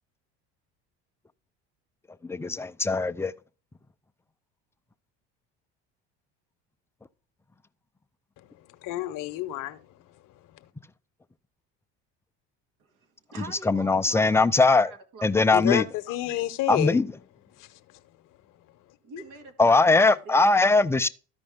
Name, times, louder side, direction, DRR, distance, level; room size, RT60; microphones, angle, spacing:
voice 1, 2.3-3.3 13.7-14.9 15.2-15.8 16.7-17.1 19.6-21.1, left 3 dB, 5° left, 0.4 m, -20 dB
voice 2, 8.4-10.1 15.5-17.0 17.6-18.0, left 15 dB, 60° left, 0.9 m, -30 dB
voice 3, 12.8-15.5 19.0-21.0, right 3 dB, 65° right, 1.9 m, -44 dB
13.0 x 5.3 x 3.6 m
supercardioid pair, 85°, 36 cm